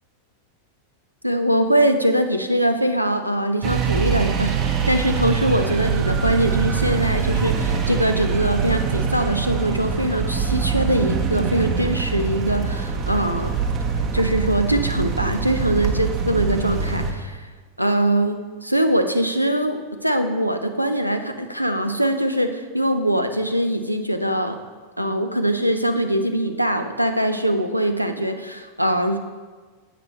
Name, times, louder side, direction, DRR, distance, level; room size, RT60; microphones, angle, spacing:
voice 1, 1.2-13.5 14.1-17.5 17.8-24.6 25.0-29.2, right 1 dB, 90° right, 7 dB, 0.6 m, -22 dB
sound 1, 3.6-17.1, right 6 dB, 35° right, 1.0 m, -23 dB
10.0 x 8.0 x 3.1 m, 1.5 s
figure-of-eight pair, 90°, 0 cm